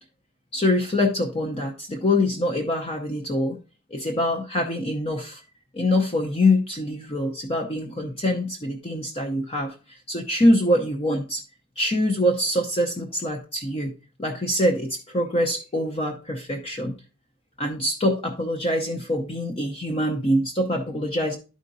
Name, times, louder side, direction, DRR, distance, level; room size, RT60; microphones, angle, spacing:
voice 1, 0.5-3.6 3.9-5.4 5.7-11.4 11.8-13.9 14.2-16.9 17.6-21.4, left 1 dB, 25° left, 3 dB, 0.7 m, -24 dB
12.0 x 5.1 x 2.6 m, 0.34 s
head